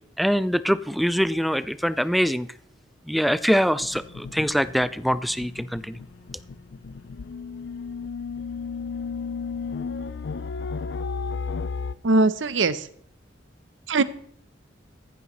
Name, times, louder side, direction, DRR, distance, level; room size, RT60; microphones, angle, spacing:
voice 1, 0.2-2.5 3.1-6.0, equal, ahead, 15 dB, 0.3 m, -23 dB
sound 1, 3.8-11.9, left 5 dB, 65° left, 0.4 m, -34 dB
voice 2, 12.0-12.9 13.9-14.0, right 3 dB, 75° right, 14 dB, 0.7 m, -20 dB
15.0 x 9.7 x 3.1 m, 0.63 s
head